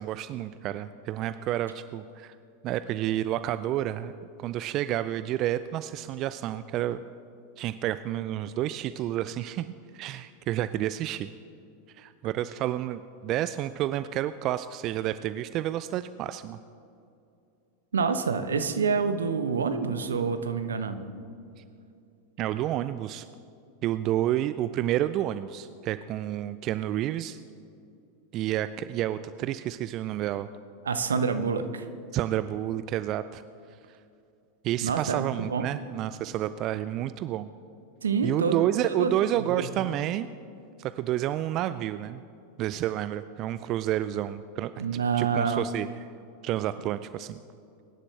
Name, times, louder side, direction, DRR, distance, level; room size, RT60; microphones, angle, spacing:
voice 1, 0.0-2.4 2.6-4.1 4.4-7.0 7.6-11.3 11.9-16.6 21.6-21.7 22.4-23.3 23.8-27.4 28.3-30.5 32.1-33.4 34.6-37.5 38.2-40.3 40.8-42.2 42.6-44.7 45.1-45.9 46.4-47.4, right 13 dB, 40° right, 13 dB, 0.4 m, -30 dB
voice 2, 17.9-21.1 30.8-31.9 34.8-35.7 38.0-38.6 38.8-39.2 39.5-39.7 44.8-45.6, right 5 dB, 75° right, 9 dB, 0.9 m, -27 dB
23.0 x 11.5 x 3.3 m, 2.5 s
figure-of-eight pair, 85°, 0 cm